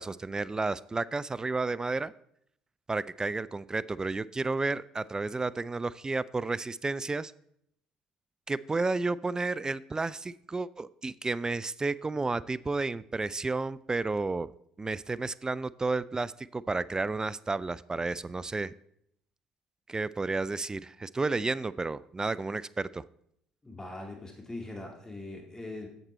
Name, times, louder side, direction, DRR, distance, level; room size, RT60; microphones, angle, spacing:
voice 1, 0.0-2.1 2.9-7.3 8.5-14.5 14.8-18.7 19.9-23.0, right 3 dB, 20° right, 18 dB, 0.3 m, -32 dB
voice 2, 23.6-25.9, left 2 dB, 20° left, 0 dB, 2.1 m, -41 dB
8.0 x 7.3 x 4.3 m, 0.71 s
hypercardioid pair, 55°, 3 cm